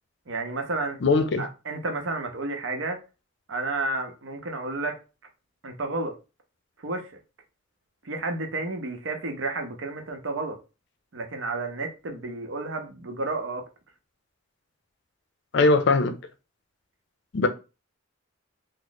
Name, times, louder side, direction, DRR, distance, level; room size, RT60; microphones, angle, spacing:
voice 1, 0.3-1.0 1.4-3.0 3.5-5.0 5.6-6.1 6.8-7.2 8.0-10.6 11.1-13.7, right 2 dB, 70° right, 0.7 m, -31 dB
voice 2, 1.0-1.4 15.5-16.1 17.3-17.5, left 3 dB, 60° left, 0.5 m, -20 dB
3.0 x 2.0 x 3.9 m
head